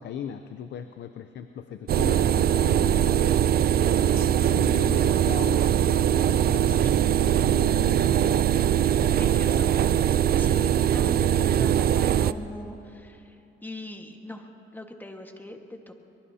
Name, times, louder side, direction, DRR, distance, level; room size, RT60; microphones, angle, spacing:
voice 1, 0.0-3.3 4.0-5.6 6.3-8.5 9.0-9.7, left 9 dB, 60° left, 9 dB, 0.6 m, -39 dB
sound 1, 1.9-12.3, right 10 dB, 50° right, 0.4 m, -22 dB
voice 2, 6.6-6.9 9.1-9.7 10.4-15.9, left 1 dB, 10° left, 4 dB, 1.5 m, -41 dB
23.0 x 22.5 x 2.8 m, 2.7 s
cardioid pair, 90°, 20 cm